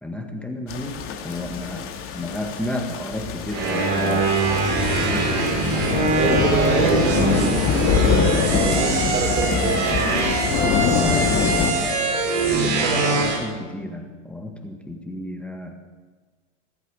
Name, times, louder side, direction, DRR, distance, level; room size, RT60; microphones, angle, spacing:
voice 1, 0.0-4.3 4.7-5.3 11.0-12.1 12.6-15.8, left 1 dB, 5° left, 3 dB, 1.7 m, -33 dB
sound 1, 0.7-11.7, left 6 dB, 35° left, 2.4 m, -24 dB
sound 2, 3.5-13.4, right 3 dB, 45° right, 4.7 m, -23 dB
voice 2, 6.2-9.9 12.4-13.4, right 5 dB, 75° right, 1 dB, 4.5 m, -26 dB
20.5 x 8.1 x 8.7 m, 1.4 s
hypercardioid pair, 115°, 37 cm